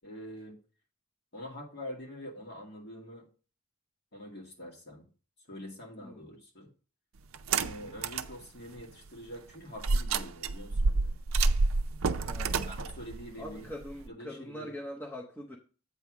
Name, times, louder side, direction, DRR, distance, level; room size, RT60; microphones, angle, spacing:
voice 1, 0.0-0.6 1.3-3.2 4.1-5.1 5.5-6.7 7.5-11.2 12.4-13.7 14.1-14.7, equal, 50° left, -1 dB, 2.1 m, -45 dB
sound 1, 7.3-8.3 8.8-8.9 9.8-14.1, right 3 dB, 70° right, 0.5 m, -29 dB
voice 2, 7.7-8.1 12.2-12.8 13.4-15.6, left 1 dB, 10° left, -1 dB, 0.7 m, -43 dB
8.2 x 3.5 x 6.0 m, 0.38 s
head